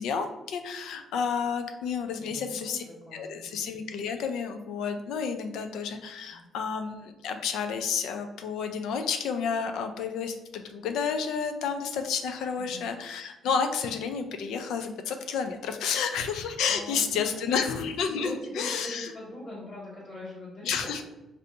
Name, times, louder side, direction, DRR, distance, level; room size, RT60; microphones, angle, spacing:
voice 1, 0.0-2.8 3.1-19.1 20.6-21.0, left 6 dB, 85° left, 6 dB, 0.4 m, -31 dB
voice 2, 2.2-3.5 6.3-6.4 12.6-12.9 16.7-17.5 18.1-21.0, left 1 dB, 60° left, -7 dB, 1.1 m, -42 dB
3.3 x 2.5 x 2.7 m, 1.0 s
cardioid pair, 90°, 0 cm